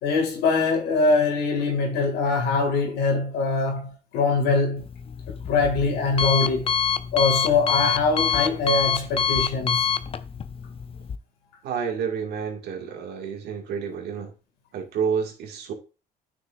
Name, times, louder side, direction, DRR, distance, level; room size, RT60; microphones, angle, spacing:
voice 1, 0.0-4.9 5.3-6.7 7.1-9.9, left 3 dB, 85° left, 2.2 m, -23 dB
Alarm, 4.8-11.2, left 7 dB, 35° left, 0.5 m, -26 dB
voice 2, 11.6-14.3 14.7-15.7, right 6 dB, 75° right, 2.0 m, -29 dB
9.6 x 6.2 x 2.5 m
cardioid pair, 110°, 17 cm